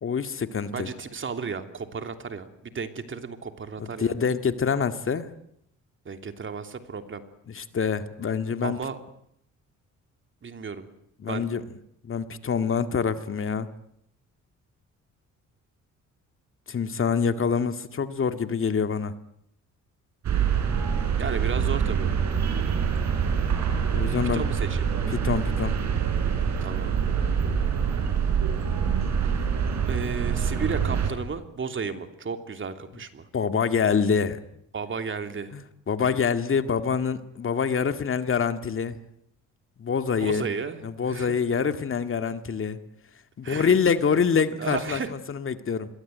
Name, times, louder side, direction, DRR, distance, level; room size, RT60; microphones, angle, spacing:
voice 1, 0.0-0.9 3.8-5.3 7.5-8.8 11.2-11.6 12.0-13.7 16.7-19.1 23.9-24.4 25.1-25.8 33.3-34.4 35.5-39.0 39.8-40.5 40.8-42.8 43.4-45.0 45.3-45.9, left 6 dB, 45° left, 9 dB, 2.0 m, -25 dB
voice 2, 0.7-4.1 6.0-7.2 8.6-9.0 10.4-10.9 11.2-11.5 21.2-22.1 24.3-24.9 26.6-27.0 27.9-28.0 29.9-33.3 34.7-35.5 40.2-41.3 43.4-43.7 44.6-45.1, right 5 dB, 40° right, 8 dB, 3.1 m, -33 dB
sound 1, 20.2-31.1, right 7 dB, 65° right, 5.8 m, -25 dB
27.0 x 22.0 x 9.4 m, 0.74 s
cardioid pair, 90°, 30 cm